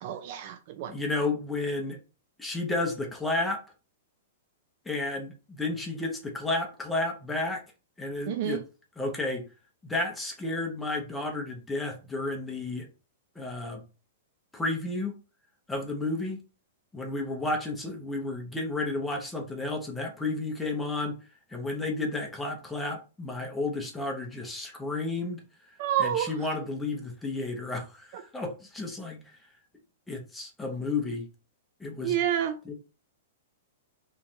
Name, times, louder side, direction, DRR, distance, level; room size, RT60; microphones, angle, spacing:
voice 1, 0.0-1.0 8.3-8.6 25.8-26.3 28.1-28.2 32.0-32.6, right 10 dB, 45° right, 0.3 m, -29 dB
voice 2, 0.9-2.0 2.4-3.6 4.9-7.6 8.0-8.6 9.0-9.5 9.8-12.9 13.4-13.8 14.5-15.2 15.7-16.5 16.9-21.1 21.5-25.4 26.0-29.2 30.1-31.3 31.8-32.2 32.7-32.8, left 2 dB, 5° left, 0.7 m, -32 dB
3.1 x 2.4 x 4.2 m
hypercardioid pair, 165°, 0 cm